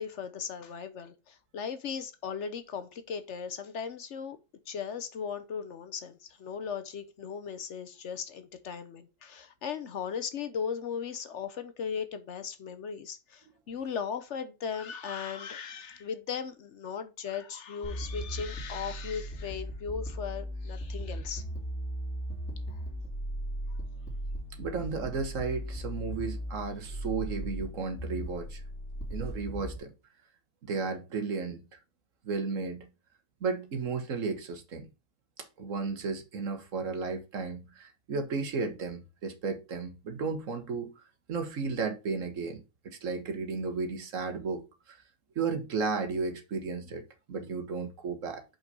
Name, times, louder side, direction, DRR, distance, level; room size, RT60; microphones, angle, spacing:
voice 1, 0.0-4.4 4.7-21.5 22.7-22.8, left 6 dB, 60° left, 1.0 m, -37 dB
sound 1, 17.8-29.8, equal, 5° left, 2.6 m, -37 dB
voice 2, 24.6-28.6 29.1-29.9 30.6-31.8 32.2-32.9 33.4-34.9 35.4-40.9 41.3-45.0 45.3-47.0 47.3-48.4, right 4 dB, 65° right, 1.5 m, -34 dB
5.6 x 4.5 x 5.3 m
omnidirectional pair, 1.4 m